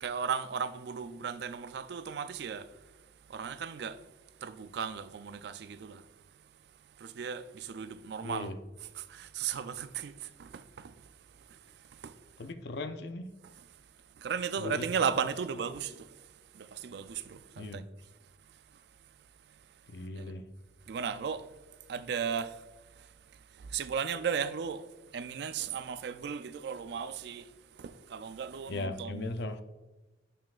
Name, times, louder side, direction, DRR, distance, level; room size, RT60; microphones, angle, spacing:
voice 1, 0.0-2.7 3.3-4.0 4.4-6.0 7.0-8.5 9.0-10.9 12.0-12.1 14.2-16.1 16.5-17.8 20.2-20.3 20.9-21.4 21.9-22.5 23.7-24.8 25.1-27.4 27.8-29.3, right 6 dB, 60° right, 0.3 m, -35 dB
voice 2, 8.2-8.6 12.4-13.3 14.6-14.8 17.6-17.8 19.9-20.5 28.7-29.6, left 2 dB, 60° left, 0.5 m, -38 dB
6.8 x 5.9 x 2.4 m
head